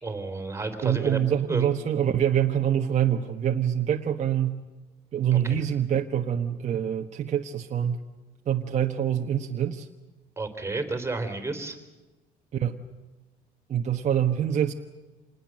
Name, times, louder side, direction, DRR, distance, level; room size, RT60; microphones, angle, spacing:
voice 1, 0.0-1.2 1.5-1.7 5.4-5.6 10.4-11.8, right 3 dB, 15° right, 7 dB, 3.4 m, -31 dB
voice 2, 0.8-4.6 5.1-8.0 8.5-9.9 12.5-12.8 13.7-14.7, right 9 dB, 45° right, 2 dB, 1.3 m, -25 dB
27.0 x 20.0 x 7.6 m, 1.2 s
cardioid pair, 110°, 17 cm